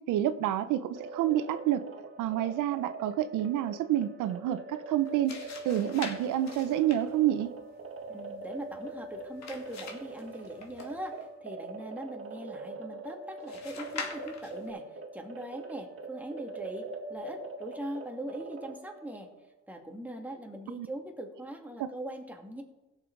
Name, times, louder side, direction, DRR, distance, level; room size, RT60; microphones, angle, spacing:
voice 1, 0.1-1.8 2.2-7.5 20.7-20.9 21.8-21.9, right 12 dB, 85° right, 12 dB, 0.7 m, -28 dB
sound 1, 0.9-19.4, right 2 dB, 45° right, 1.9 m, -43 dB
sound 2, 4.9-11.3 13.5-14.7, left 5 dB, 65° left, 2.4 m, -45 dB
voice 2, 8.1-14.8 15.1-19.3 19.7-22.6, right 1 dB, 5° right, 1 dB, 2.2 m, -41 dB
17.0 x 6.8 x 4.6 m, 1.1 s
cardioid pair, 90°, 30 cm